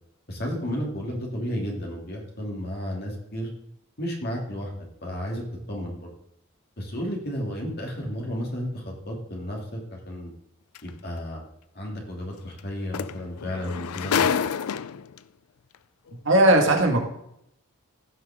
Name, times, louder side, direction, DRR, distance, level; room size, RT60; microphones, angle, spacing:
voice 1, 0.3-3.5 4.0-4.7 5.0-6.1 6.8-10.3 10.8-11.4 11.7-14.4, equal, 45° left, -1 dB, 2.8 m, -32 dB
sound 1, 10.8-10.9 12.6-12.7 12.9-15.2 16.1-16.2, left 7 dB, 80° left, 0.4 m, -27 dB
voice 2, 16.1-17.0, right 1 dB, 60° right, 1 dB, 2.1 m, -18 dB
16.0 x 5.8 x 3.7 m, 0.75 s
head